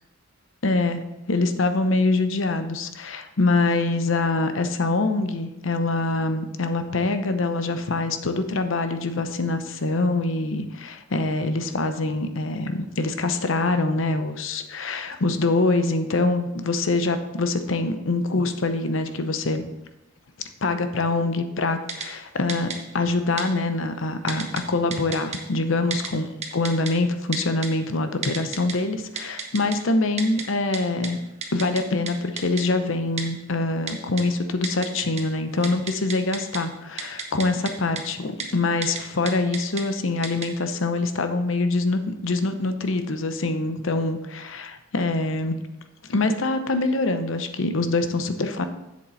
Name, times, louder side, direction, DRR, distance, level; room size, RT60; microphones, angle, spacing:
voice 1, 0.6-1.0 1.3-19.7 20.6-31.2 31.5-45.6 46.1-48.7, left 2 dB, 65° left, 8 dB, 0.7 m, -24 dB
Typing, 21.9-22.1 22.5-22.8 23.4-23.5 24.3-24.6 24.9-25.4 25.9-26.1 26.4-26.9 27.3-27.7 28.2-28.7 29.2-29.8 30.2-30.4 30.7-30.8 31.0-31.1 31.4-32.1 32.4-32.6 33.2-33.3 33.9-34.2 34.6-35.2 35.5-36.6 37.0-37.7 38.0-38.1 38.4-38.5 38.8-39.0 39.3-39.8 40.2-40.5, right 5 dB, 35° right, 1.1 m, -31 dB
7.4 x 7.4 x 4.0 m, 0.95 s
head